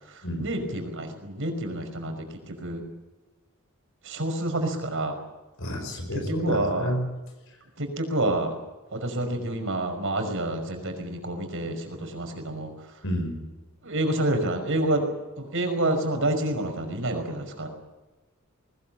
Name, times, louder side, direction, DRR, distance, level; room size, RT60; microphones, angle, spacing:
voice 1, 0.1-2.8 4.0-5.2 6.1-6.9 7.8-8.6 8.9-12.7 13.8-15.1 15.4-17.7, right 1 dB, 60° right, 5 dB, 5.4 m, -28 dB
voice 2, 5.6-7.0 13.0-13.3, equal, 65° left, 5 dB, 5.2 m, -29 dB
20.5 x 20.5 x 8.7 m, 1.1 s
head